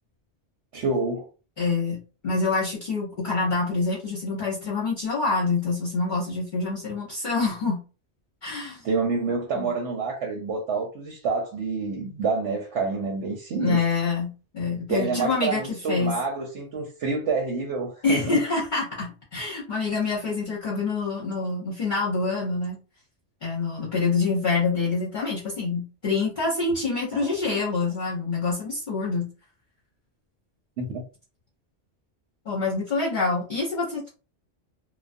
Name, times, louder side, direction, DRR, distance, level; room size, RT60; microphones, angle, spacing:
voice 1, 0.7-1.3 8.8-13.8 14.9-18.4 27.1-27.6 30.8-31.0, right 4 dB, 85° right, 0.9 m, -28 dB
voice 2, 1.6-7.8 8.4-8.8 9.6-9.7 13.5-16.2 18.0-22.8 23.4-29.3 32.5-34.1, left 4 dB, 50° left, 0.7 m, -26 dB
2.3 x 2.1 x 2.5 m
omnidirectional pair, 1.2 m